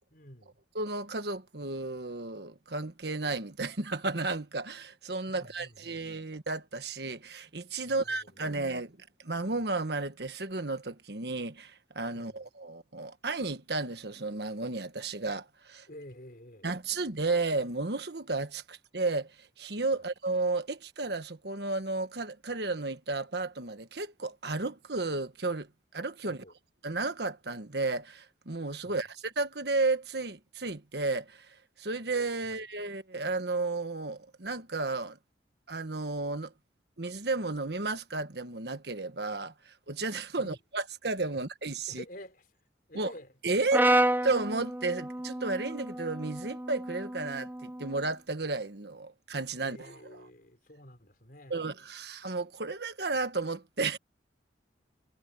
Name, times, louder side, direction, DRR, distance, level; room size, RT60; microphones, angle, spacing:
voice 1, 0.1-0.6 5.3-6.1 7.8-8.7 12.1-12.4 15.9-16.7 20.0-20.1 26.2-26.5 28.8-29.1 32.4-32.5 40.4-40.6 41.3-41.4 41.9-42.5 42.9-43.3 49.6-51.6, left 1 dB, 50° left, 4.5 m, -50 dB
voice 2, 0.7-15.9 16.6-25.7 25.9-26.4 26.8-31.5 31.8-35.2 35.7-36.5 37.0-42.0 42.9-43.1 43.4-43.9 44.2-49.9 51.5-54.0, right 3 dB, 65° right, 1.5 m, -33 dB
Brass instrument, 43.7-48.0, right 1 dB, 10° right, 0.5 m, -30 dB
head